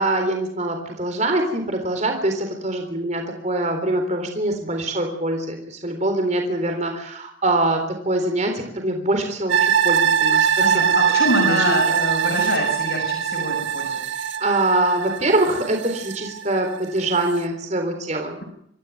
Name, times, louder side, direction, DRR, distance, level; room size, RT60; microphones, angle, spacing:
voice 1, 0.0-10.9 11.4-11.8 14.4-18.4, right 2 dB, 35° right, 4 dB, 3.9 m, -24 dB
sound 1, 9.5-16.8 17.2-17.3, right 8 dB, 65° right, 1.9 m, -22 dB
voice 2, 10.6-14.0, left 1 dB, 60° left, -1 dB, 7.2 m, -25 dB
26.0 x 15.0 x 9.4 m, 0.72 s
head